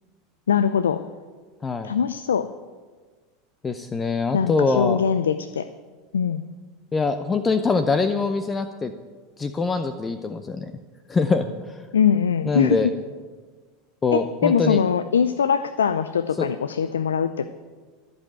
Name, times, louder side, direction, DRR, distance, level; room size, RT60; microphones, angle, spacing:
voice 1, 0.5-1.0 1.8-2.5 4.3-5.7 6.1-6.4 11.9-12.8 14.1-17.5, left 7 dB, 85° left, 13 dB, 0.4 m, -22 dB
voice 2, 1.6-1.9 3.6-5.0 6.9-8.9 9.4-10.7 11.1-11.8 12.5-12.9 14.0-14.8 16.4-16.5, left 4 dB, 25° left, 9 dB, 0.7 m, -23 dB
14.5 x 5.3 x 8.9 m, 1.5 s
hypercardioid pair, 90°, 0 cm